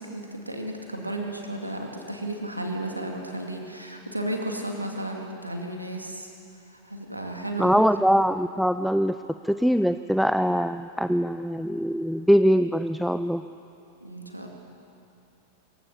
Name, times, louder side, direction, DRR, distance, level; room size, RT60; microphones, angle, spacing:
voice 1, 0.0-6.3 6.7-7.8 14.0-14.5, right 1 dB, 85° right, 2 dB, 2.4 m, -33 dB
voice 2, 7.6-9.2 9.4-13.4, equal, ahead, 11 dB, 0.4 m, -22 dB
24.0 x 15.5 x 6.9 m, 2.7 s
figure-of-eight pair, 90°, 0 cm